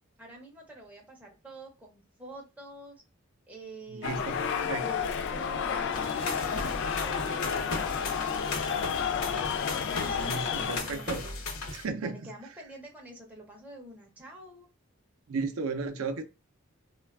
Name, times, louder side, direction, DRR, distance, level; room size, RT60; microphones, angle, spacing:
voice 1, 0.2-3.0 3.5-4.4 4.8-8.4 9.8-11.4 12.0-14.7, right 1 dB, 5° right, 0.5 m, -47 dB
voice 2, 3.9-4.8 10.2-11.3 11.7-12.2 15.3-16.2, right 4 dB, 75° right, 0.5 m, -34 dB
sound 1, 4.0-10.8, left 7 dB, 60° left, 0.3 m, -31 dB
sound 2, 5.9-11.8, left 3 dB, 75° left, 0.7 m, -37 dB
3.1 x 2.2 x 2.2 m
head